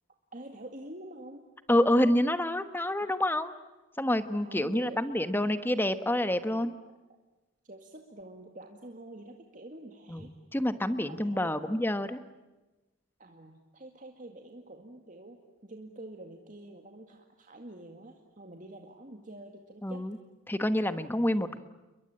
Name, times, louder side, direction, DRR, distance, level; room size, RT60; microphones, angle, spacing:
voice 1, 0.3-1.4 3.0-3.1 4.4-5.0 7.6-10.3 11.1-11.5 13.2-20.1, right 1 dB, 40° right, 3 dB, 2.0 m, -47 dB
voice 2, 1.7-3.5 4.0-6.7 10.1-12.2 19.8-20.2 20.5-21.6, left 1 dB, 10° left, 11 dB, 1.2 m, -28 dB
30.0 x 22.5 x 8.8 m, 1.1 s
head